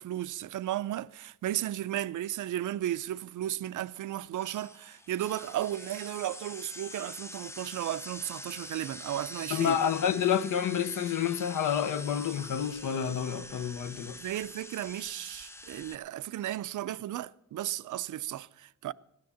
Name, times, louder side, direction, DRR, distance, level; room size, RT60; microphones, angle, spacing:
voice 1, 0.0-9.8 14.1-18.9, right 13 dB, 70° right, 0.5 m, -34 dB
sound 1, 4.4-15.9, left 2 dB, 10° left, 0.5 m, -45 dB
voice 2, 9.5-14.2, left 8 dB, 75° left, 0.9 m, -29 dB
16.0 x 10.5 x 7.1 m
wide cardioid pair, 150°, 32 cm